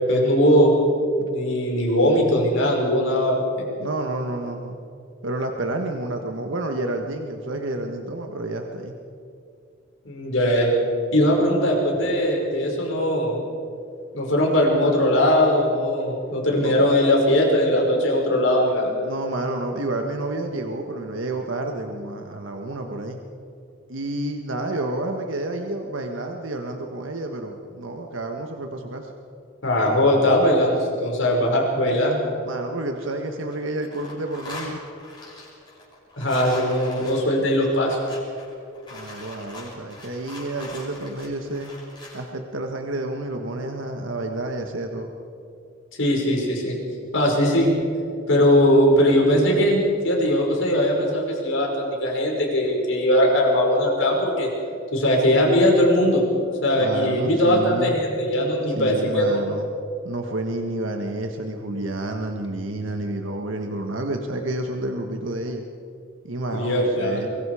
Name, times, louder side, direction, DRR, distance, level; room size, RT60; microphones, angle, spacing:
voice 1, 0.1-0.7 1.3-3.7 10.1-10.7 11.1-13.4 14.1-18.9 29.6-32.2 36.2-38.0 46.0-46.8 47.1-47.7 48.3-54.5 54.9-56.2 56.6-59.4 66.5-67.2, left 1 dB, 75° left, -1 dB, 5.6 m, -20 dB
voice 2, 3.8-4.8 5.2-9.0 16.6-16.7 19.0-23.2 23.9-29.1 32.5-34.8 38.9-41.7 42.1-45.1 56.8-57.9 58.7-59.7 60.0-65.6 66.2-67.3, right 2 dB, 75° right, 3 dB, 1.4 m, -30 dB
sound 1, 32.8-33.5 33.8-42.3, left 2 dB, 25° left, 6.7 m, -42 dB
24.0 x 23.0 x 4.9 m, 2.6 s
head